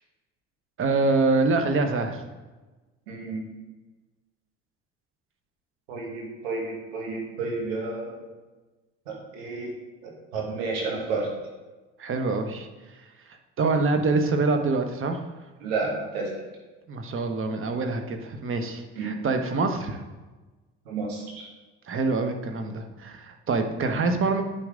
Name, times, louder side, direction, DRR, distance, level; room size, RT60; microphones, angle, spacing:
voice 1, 0.8-2.2 12.0-12.7 13.6-15.2 16.9-20.0 21.9-24.4, right 3 dB, 45° right, 5 dB, 1.3 m, -25 dB
voice 2, 3.1-3.4 5.9-8.2 9.1-9.7 10.0-11.3 15.6-16.3 19.0-19.2 20.9-21.5, right 3 dB, 85° right, -1 dB, 2.1 m, -31 dB
9.7 x 6.1 x 3.9 m, 1.2 s
hypercardioid pair, 70°, 30 cm